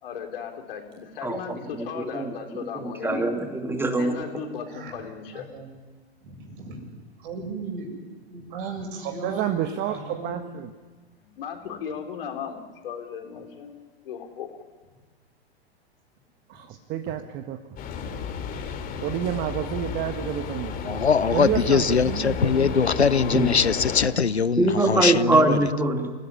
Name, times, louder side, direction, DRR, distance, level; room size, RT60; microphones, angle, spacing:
voice 1, 0.0-3.3 3.9-5.5 11.2-13.8 14.0-14.6, left 7 dB, 60° left, 4.0 m, -36 dB
voice 2, 1.8-2.3 3.0-4.2 23.3-23.5 24.6-26.1, right 2 dB, 5° right, 2.7 m, -22 dB
voice 3, 5.3-5.7 6.2-7.9 8.3-9.5 9.9-10.5, right 4 dB, 55° right, 7.2 m, -37 dB
voice 4, 9.2-10.7 16.5-17.6 19.0-20.9 21.3-22.9, right 11 dB, 30° right, 1.3 m, -30 dB
sound 1, 17.8-24.1, left 6 dB, 25° left, 3.0 m, -32 dB
voice 5, 20.9-25.6, left 6 dB, 85° left, 0.7 m, -22 dB
28.0 x 16.5 x 9.9 m
figure-of-eight pair, 100°, 32 cm